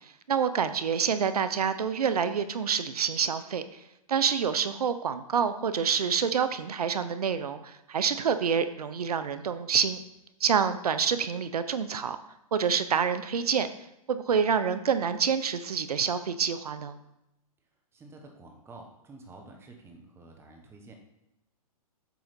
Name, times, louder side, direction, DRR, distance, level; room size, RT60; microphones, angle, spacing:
voice 1, 0.3-3.8 4.1-10.0 10.4-12.2 12.5-13.7 14.1-17.0, right 7 dB, 85° right, 11 dB, 0.7 m, -27 dB
voice 2, 17.9-20.9, right 2 dB, 15° right, 2 dB, 1.3 m, -49 dB
7.7 x 3.8 x 5.1 m, 0.87 s
hypercardioid pair, 135°, 19 cm